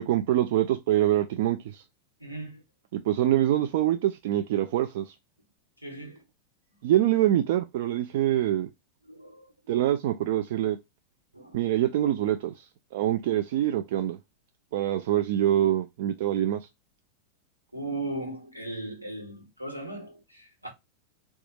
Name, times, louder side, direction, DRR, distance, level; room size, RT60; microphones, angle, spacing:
voice 1, 0.0-1.8 2.9-5.1 6.8-8.7 9.7-10.8 11.5-12.5 12.9-14.2 14.7-16.6, right 12 dB, 55° right, 0.3 m, -25 dB
voice 2, 2.2-2.6 5.8-6.2 9.0-9.5 11.3-11.7 17.7-20.7, right 2 dB, 85° right, 1.2 m, -37 dB
4.1 x 2.3 x 2.6 m
figure-of-eight pair, 90°, 0 cm